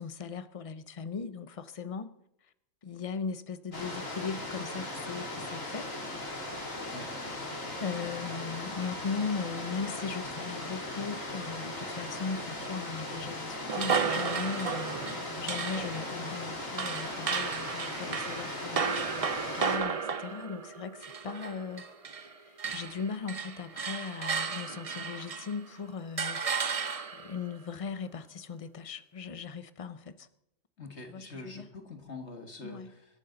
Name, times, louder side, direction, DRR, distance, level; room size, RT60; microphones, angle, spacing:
voice 1, 0.0-2.1 2.8-5.9 7.8-21.8 22.1-26.4 27.1-30.3 31.1-31.7 32.6-32.9, left 5 dB, 35° left, 0.6 m, -38 dB
sound 1, 3.7-19.8, left 1 dB, 85° left, 3.5 m, -38 dB
sound 2, 13.7-22.3 22.6-25.6 26.2-27.4, right 6 dB, 35° right, 0.6 m, -34 dB
voice 2, 30.8-33.1, left 3 dB, 60° left, 2.0 m, -44 dB
25.0 x 12.0 x 3.9 m
omnidirectional pair, 1.3 m